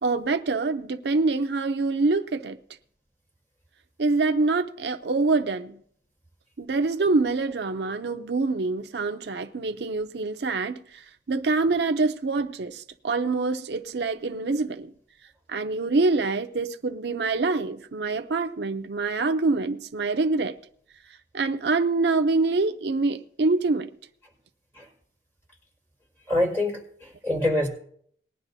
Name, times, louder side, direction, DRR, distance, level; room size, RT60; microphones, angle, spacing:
voice 1, 0.0-2.6 4.0-5.8 6.6-14.9 15.5-20.6 21.3-23.9, right 3 dB, 75° right, 0.6 m, -25 dB
voice 2, 26.3-27.7, left 1 dB, 10° left, 4.7 m, -25 dB
20.5 x 10.5 x 2.7 m
head